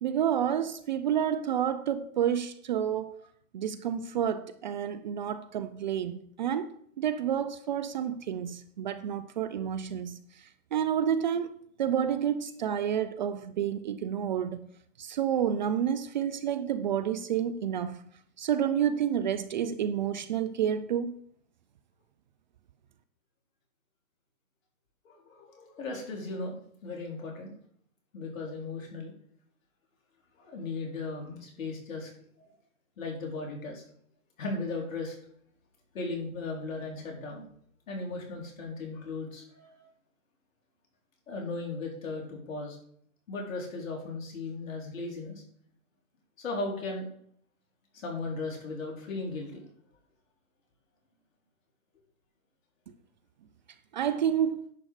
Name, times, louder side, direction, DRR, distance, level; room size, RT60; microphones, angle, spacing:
voice 1, 0.0-3.2 3.5-11.5 11.8-14.7 15.0-18.0 18.4-21.2 53.9-54.6, right 9 dB, 35° right, 0.5 m, -29 dB
voice 2, 25.0-26.5 26.8-27.5 28.1-29.1 30.4-32.1 33.0-33.8 34.4-35.1 35.9-37.5 37.9-39.9 41.3-42.8 43.3-45.4 46.4-47.1 47.9-49.6, left 3 dB, 65° left, 4.7 m, -36 dB
10.5 x 7.7 x 4.9 m
hypercardioid pair, 135°, 44 cm